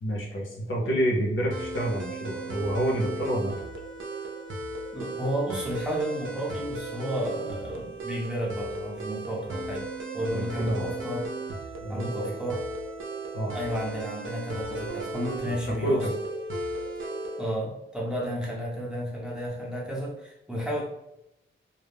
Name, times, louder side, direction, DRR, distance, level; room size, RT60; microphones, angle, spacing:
voice 1, 0.0-3.6 10.3-11.0 11.8-12.4 13.3-13.5 15.8-16.1, right 1 dB, 70° left, -2 dB, 0.7 m, -28 dB
sound 1, 1.5-17.5, right 2 dB, 75° right, 0.5 m, -36 dB
voice 2, 4.9-9.9 10.1-11.3 11.9-12.7 13.5-16.0 17.4-20.8, equal, 5° right, -4 dB, 0.6 m, -32 dB
2.2 x 2.1 x 3.4 m, 0.87 s
wide cardioid pair, 145°, 21 cm